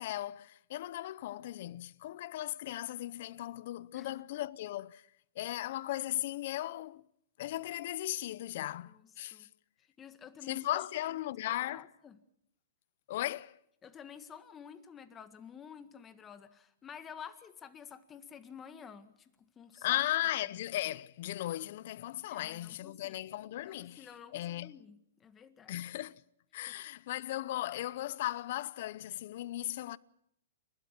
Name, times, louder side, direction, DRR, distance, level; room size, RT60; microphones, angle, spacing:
voice 1, 0.0-5.0 5.4-7.0 7.4-9.5 10.5-11.9 13.1-13.6 19.8-24.1 24.3-24.8 25.7-26.2 26.5-30.0, left 14 dB, 55° left, 0.8 m, -37 dB
voice 2, 8.6-9.5 10.0-10.9 11.2-11.3 11.7-12.2 13.8-20.0 22.3-23.2 23.6-25.8 26.7-26.8, left 7 dB, 20° left, 1.7 m, -51 dB
30.0 x 13.0 x 8.4 m
hypercardioid pair, 140°, 0 cm